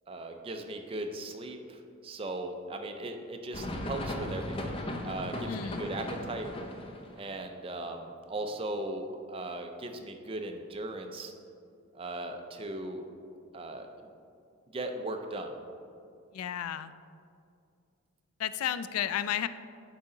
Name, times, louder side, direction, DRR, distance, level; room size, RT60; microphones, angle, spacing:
voice 1, 0.1-4.8 5.0-6.5 7.2-11.3 11.9-13.1 13.5-14.1 14.7-15.6, right 1 dB, 25° right, 5 dB, 0.4 m, -38 dB
sound 1, 3.5-7.2, left 1 dB, 25° left, 0.5 m, -37 dB
voice 2, 5.5-5.9 16.3-16.9 18.4-19.5, left 10 dB, 90° left, 14 dB, 0.3 m, -32 dB
8.2 x 4.9 x 3.8 m, 2.4 s
head